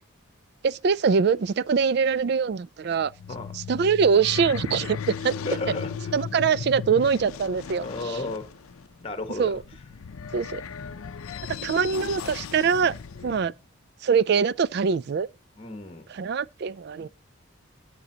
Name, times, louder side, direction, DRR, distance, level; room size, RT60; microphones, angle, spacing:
voice 1, 0.6-3.1 3.5-5.3 6.1-8.2 9.4-9.6 10.3-10.6 11.6-12.9 13.2-13.5 14.0-15.3 16.1-17.1, right 6 dB, 50° right, 0.3 m, -23 dB
sound 1, 3.0-13.5, left 6 dB, 90° left, 0.5 m, -37 dB
voice 2, 3.3-3.6 5.4-5.9 7.8-8.5 9.0-9.6 13.1-13.5 15.6-16.1 17.0-17.1, left 3 dB, 30° left, 1.2 m, -34 dB
12.5 x 6.9 x 2.8 m
head